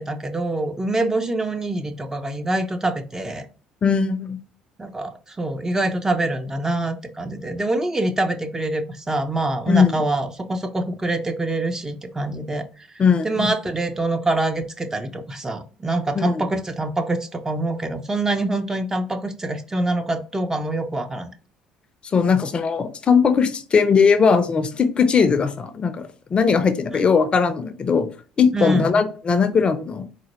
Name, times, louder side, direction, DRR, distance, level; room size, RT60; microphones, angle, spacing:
voice 1, 0.0-3.5 4.8-12.9 13.2-21.3 28.5-29.0, right 2 dB, 20° right, 6 dB, 0.6 m, -25 dB
voice 2, 3.8-4.4 9.7-9.9 13.0-13.5 16.2-16.4 22.0-28.1 28.4-30.1, left 5 dB, 40° left, 10 dB, 0.5 m, -19 dB
4.1 x 2.1 x 2.9 m, 0.38 s
hypercardioid pair, 60°, 3 cm